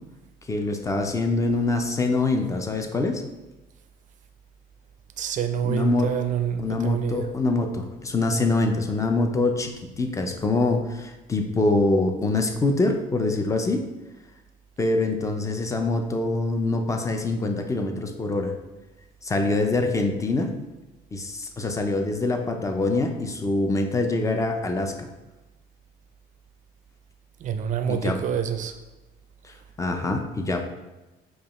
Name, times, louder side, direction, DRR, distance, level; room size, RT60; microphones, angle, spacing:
voice 1, 0.5-3.2 5.6-6.1 6.6-13.8 14.8-18.5 19.2-20.5 21.1-25.1 27.9-28.2 29.8-30.7, left 2 dB, 20° left, 0.5 m, -24 dB
voice 2, 5.2-7.3 27.4-28.8, right 8 dB, 50° right, 0.4 m, -27 dB
4.9 x 2.4 x 3.0 m
cardioid pair, 110°, 17 cm